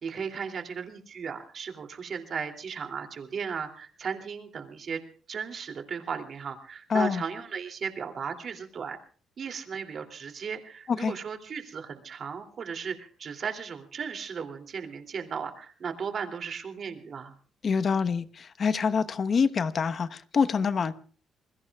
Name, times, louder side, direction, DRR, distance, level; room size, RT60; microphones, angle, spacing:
voice 1, 0.0-5.0 5.3-9.0 9.4-17.3, right 6 dB, 55° right, 2.9 m, -36 dB
voice 2, 6.9-7.2 10.9-11.1 17.6-20.9, left 5 dB, 50° left, 1.1 m, -26 dB
27.5 x 21.0 x 2.4 m
cardioid pair, 90°, 0 cm